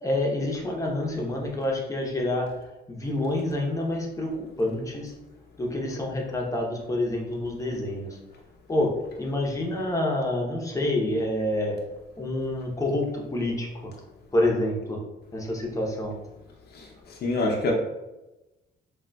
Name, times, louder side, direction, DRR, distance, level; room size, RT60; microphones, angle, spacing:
voice 1, 0.0-2.5 2.9-4.3 4.6-5.1 5.6-8.2 8.7-8.9 9.2-11.8 12.2-13.7 14.3-15.0 15.3-16.1, left 1 dB, 15° left, -1 dB, 0.8 m, -27 dB
voice 2, 16.7-17.7, left 2 dB, 55° left, -1 dB, 0.7 m, -27 dB
3.8 x 2.3 x 2.3 m, 1.0 s
cardioid pair, 90°, 20 cm